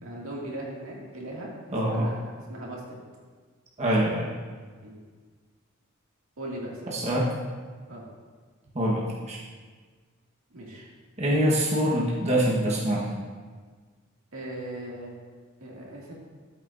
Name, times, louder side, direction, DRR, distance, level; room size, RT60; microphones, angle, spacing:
voice 1, 0.0-2.8 4.8-5.0 6.4-7.0 7.9-8.0 10.5-10.8 14.3-15.2 15.6-16.1, right 1 dB, 85° right, -3 dB, 2.2 m, -39 dB
voice 2, 1.7-2.1 3.8-4.3 6.9-7.3 8.7-9.4 11.2-13.1, right 1 dB, 35° right, -4 dB, 1.2 m, -25 dB
13.0 x 8.2 x 2.6 m, 1.5 s
head